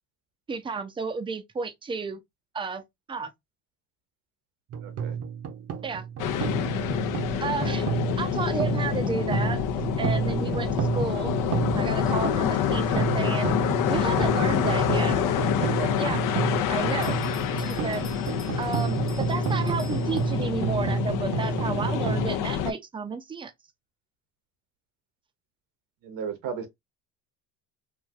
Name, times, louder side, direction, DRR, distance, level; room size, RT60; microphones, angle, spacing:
voice 1, 0.5-2.2 2.5-3.3 5.8-6.1 7.4-7.9 8.2-9.6 10.0-11.3 11.7-13.5 13.9-15.2 15.5-16.2 16.7-17.2 17.5-18.0 18.6-23.5, right 4 dB, 15° right, 0.5 m, -32 dB
sound 1, 4.7-22.3, right 7 dB, 50° right, 0.7 m, -30 dB
voice 2, 4.8-5.2 26.0-26.7, right 6 dB, 80° right, 1.1 m, -34 dB
sound 2, 6.2-22.7, left 10 dB, 70° left, 0.6 m, -27 dB
Bell, 17.0-20.7, left 3 dB, 35° left, 1.1 m, -49 dB
3.2 x 2.6 x 2.3 m
cardioid pair, 110°, 34 cm